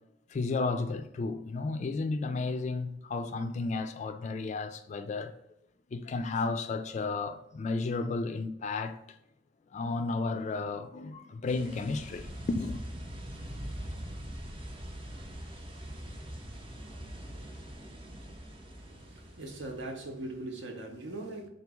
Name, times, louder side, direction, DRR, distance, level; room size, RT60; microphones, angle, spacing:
voice 1, 0.3-5.4 5.9-9.0 9.7-12.8, left 3 dB, 40° left, 0.3 m, -33 dB
sound 1, 11.5-20.1, equal, 30° right, 0.7 m, -43 dB
voice 2, 18.7-21.5, right 2 dB, 80° right, 0.8 m, -40 dB
3.9 x 2.9 x 3.5 m
head